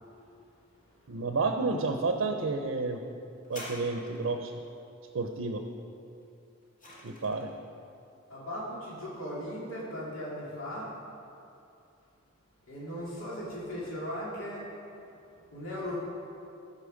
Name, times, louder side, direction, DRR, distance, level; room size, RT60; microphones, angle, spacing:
voice 1, 1.1-3.0 3.5-4.5 5.1-5.6 7.0-7.5, right 3 dB, 65° right, 5 dB, 0.6 m, -30 dB
sound 1, 3.4-4.5 6.2-7.6 8.4-8.5, left 1 dB, 40° left, 2.3 m, -46 dB
voice 2, 8.3-10.9 12.7-14.6 15.5-16.0, equal, 90° left, -6 dB, 2.4 m, -37 dB
15.0 x 5.4 x 5.0 m, 2.7 s
head